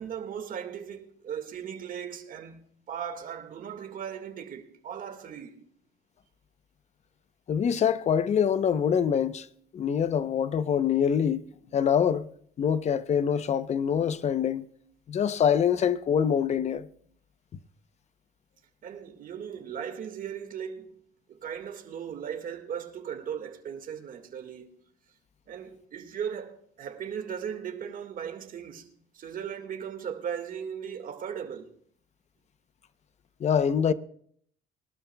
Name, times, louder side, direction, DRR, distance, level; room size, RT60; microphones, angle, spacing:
voice 1, 0.0-5.7 18.8-21.0 21.3-24.7 25.5-28.9 29.1-31.7, right 8 dB, 55° right, 1.8 m, -37 dB
voice 2, 7.5-9.5 9.7-11.4 11.7-12.3 12.6-14.7 15.1-16.9 33.4-33.9, left 8 dB, 40° left, 0.7 m, -25 dB
23.0 x 12.5 x 2.3 m
cardioid pair, 110°, 17 cm